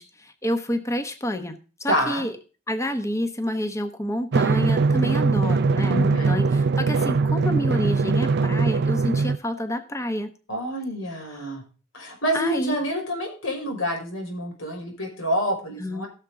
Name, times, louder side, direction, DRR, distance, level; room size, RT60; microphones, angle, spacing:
voice 1, 0.0-2.3 2.7-10.3 12.3-12.8 15.8-16.0, left 1 dB, 15° left, 8 dB, 1.1 m, -28 dB
voice 2, 1.9-2.3 5.9-6.3 10.5-11.6 11.9-16.1, equal, 85° left, 2 dB, 5.4 m, -27 dB
Drum, 4.3-9.4, right 4 dB, 55° right, 0.5 m, -21 dB
16.5 x 7.2 x 3.8 m, 0.36 s
head